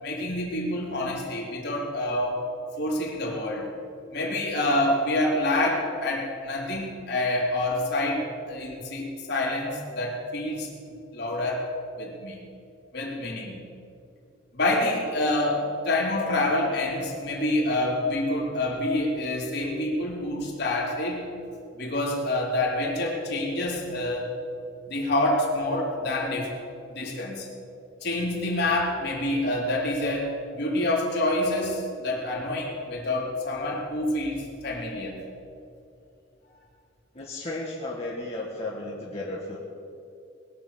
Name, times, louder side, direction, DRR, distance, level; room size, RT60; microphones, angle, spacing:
voice 1, 0.0-2.5 2.8-3.7 4.1-10.7 11.1-11.7 12.0-12.4 12.9-13.7 14.5-21.3 21.8-24.3 24.9-26.5 26.9-27.5 28.0-35.2, left 1 dB, 55° left, -2 dB, 3.2 m, -27 dB
voice 2, 37.1-39.6, left 2 dB, 30° left, -4 dB, 1.6 m, -34 dB
20.5 x 6.9 x 8.2 m, 2.6 s
head